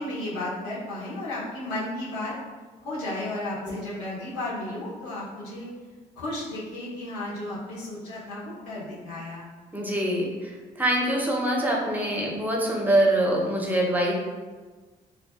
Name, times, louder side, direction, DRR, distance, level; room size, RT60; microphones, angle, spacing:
voice 1, 0.0-2.3 2.8-5.7 6.2-9.5, left 1 dB, 90° left, -7 dB, 0.8 m, -33 dB
voice 2, 9.7-14.1, right 1 dB, 10° right, -2 dB, 0.7 m, -24 dB
2.5 x 2.4 x 2.3 m, 1.3 s
hypercardioid pair, 55°, 19 cm